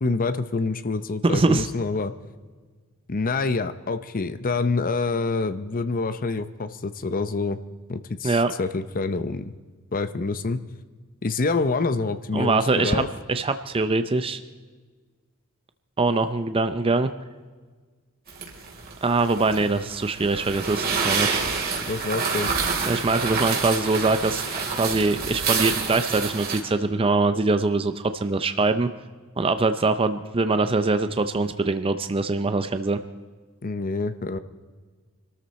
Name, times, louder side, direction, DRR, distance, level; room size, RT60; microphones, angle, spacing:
voice 1, 0.0-2.1 3.1-7.6 7.9-9.5 9.9-10.6 11.2-13.1 21.9-22.5 33.6-34.4, left 3 dB, 40° left, 11 dB, 0.6 m, -26 dB
voice 2, 1.3-1.7 8.2-8.5 12.3-14.4 16.0-17.1 19.0-21.4 22.9-24.4 24.7-28.9 29.4-33.0, right 3 dB, 25° right, 10 dB, 0.5 m, -23 dB
sound 1, 18.3-26.6, right 5 dB, 45° right, 3.2 m, -27 dB
25.0 x 13.5 x 4.2 m, 1.4 s
head